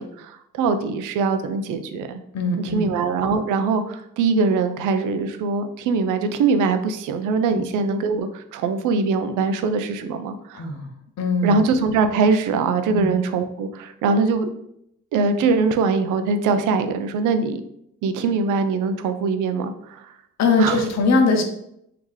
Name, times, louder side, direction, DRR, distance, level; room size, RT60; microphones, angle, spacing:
voice 1, 0.0-2.2 2.7-10.6 11.4-14.5 15.1-17.6 18.0-20.0 20.6-20.8, right 4 dB, 85° right, 9 dB, 0.5 m, -22 dB
voice 2, 2.3-2.9 7.5-7.6 10.5-10.9 11.2-11.6 12.9-13.2 20.4-21.4, left 3 dB, 60° left, 4 dB, 0.8 m, -21 dB
3.6 x 2.8 x 3.1 m, 0.77 s
cardioid pair, 90°, 30 cm